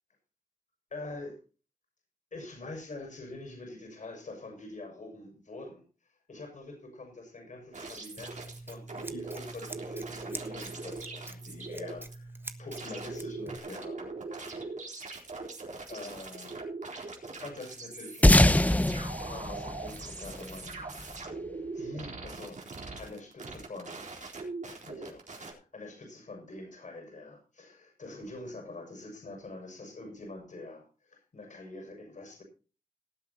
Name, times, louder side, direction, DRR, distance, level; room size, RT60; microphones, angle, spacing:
voice 1, 0.9-1.4 2.3-5.8 6.3-12.3 12.6-14.1 14.5-14.7 15.9-16.6 17.2-18.5 19.2-20.9 21.7-22.6 23.0-24.0 24.7-32.4, left 2 dB, 55° left, 3 dB, 6.6 m, -45 dB
sound 1, 7.7-12.1 12.7-25.5, right 3 dB, 55° right, 4.2 m, -41 dB
Scissors, 8.2-13.6, right 2 dB, 15° right, 1.4 m, -45 dB
sound 2, 18.2-21.0, left 1 dB, 10° left, 0.8 m, -23 dB
19.0 x 8.1 x 4.3 m, 0.35 s
cardioid pair, 75°, 15 cm